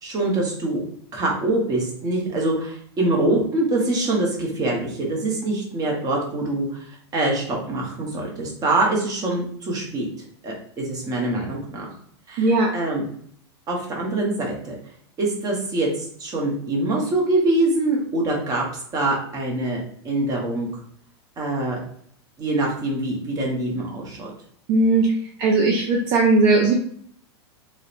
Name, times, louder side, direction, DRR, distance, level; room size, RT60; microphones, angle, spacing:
voice 1, 0.0-0.8 1.1-10.1 10.4-11.9 12.3-12.5 12.7-13.0 13.7-14.8 15.2-18.6 18.9-20.8 21.4-21.8 22.4-24.3, right 2 dB, 25° right, -1 dB, 0.8 m, -24 dB
voice 2, 12.4-12.7 24.7-26.7, right 3 dB, 45° right, 0 dB, 0.4 m, -18 dB
2.7 x 2.1 x 2.4 m, 0.62 s
hypercardioid pair, 130°, 14 cm